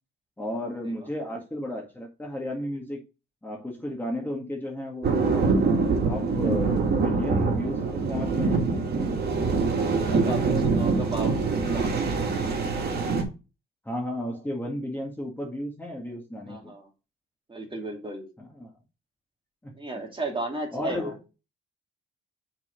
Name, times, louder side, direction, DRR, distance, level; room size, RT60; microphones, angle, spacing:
voice 1, 0.4-3.0 3.4-8.7 13.9-16.7 18.4-18.7 19.6-20.1 20.7-21.2, left 1 dB, 10° left, 1.8 m, -33 dB
sound 1, 5.0-13.2, right 4 dB, 55° right, 2.3 m, -24 dB
voice 2, 7.6-7.9 9.3-12.1 16.5-16.9 17.5-18.3 19.7-21.2, right 2 dB, 25° right, 2.6 m, -35 dB
6.0 x 4.2 x 5.2 m
cardioid pair, 90°, 20 cm